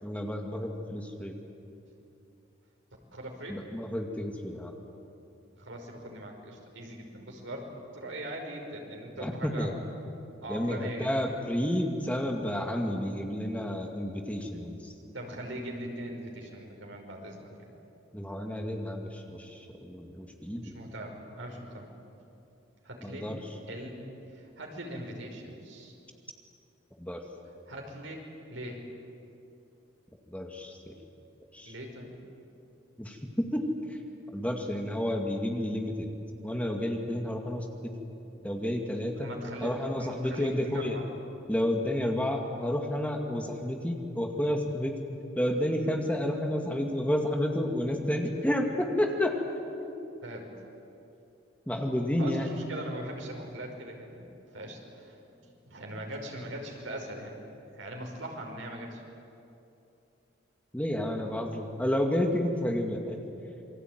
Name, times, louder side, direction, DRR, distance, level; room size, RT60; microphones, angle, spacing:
voice 1, 0.0-1.4 3.5-4.7 9.2-9.8 10.5-14.9 18.1-20.7 23.0-23.4 27.0-27.2 30.3-30.9 31.5-31.7 33.0-33.7 34.3-36.1 36.4-37.9 38.4-39.3 39.6-41.0 41.5-45.0 45.4-49.4 49.8-49.9 51.7-52.5 60.7-63.2, left 1 dB, 5° left, 2 dB, 2.1 m, -30 dB
voice 2, 3.1-3.6 5.6-9.8 10.4-11.3 15.1-17.7 20.6-21.9 22.8-23.3 23.7-25.9 27.7-28.9 31.7-32.2 39.1-41.1 50.2-50.5 52.2-54.3 54.5-55.4 55.7-57.3 57.8-59.0, right 1 dB, 90° right, 1 dB, 5.4 m, -41 dB
28.0 x 22.5 x 9.4 m, 2.8 s
head